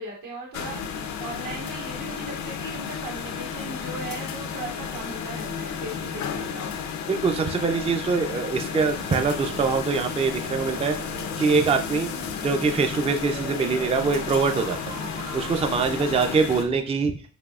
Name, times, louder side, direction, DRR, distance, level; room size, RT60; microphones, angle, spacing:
voice 1, 0.0-6.8 14.9-15.2 15.9-16.4, right 2 dB, 85° right, -3 dB, 1.8 m, -38 dB
sound 1, 0.5-16.7, left 7 dB, 65° left, 0.6 m, -33 dB
voice 2, 7.1-11.0 11.4-12.1 12.4-14.9 15.3-17.1, right 4 dB, 20° right, 6 dB, 0.4 m, -23 dB
sound 2, 8.9-15.7, right 4 dB, 45° right, 0.8 m, -41 dB
6.1 x 2.7 x 2.4 m, 0.42 s
cardioid pair, 90°, 30 cm